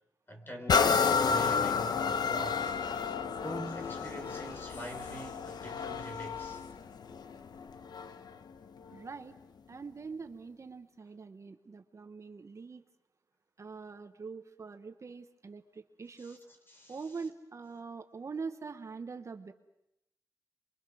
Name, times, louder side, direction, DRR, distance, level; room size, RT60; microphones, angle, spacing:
voice 1, 0.3-2.7 3.4-6.6 16.2-16.4 16.7-17.0, equal, 30° left, 3.6 m, -44 dB
sound 1, 0.7-8.3 8.9-9.0, left 6 dB, 80° left, 1.0 m, -31 dB
voice 2, 8.9-9.4 9.7-12.8 13.6-16.4 16.9-19.5, right 4 dB, 45° right, 1.1 m, -43 dB
28.5 x 23.0 x 6.2 m
wide cardioid pair, 125°, 7 cm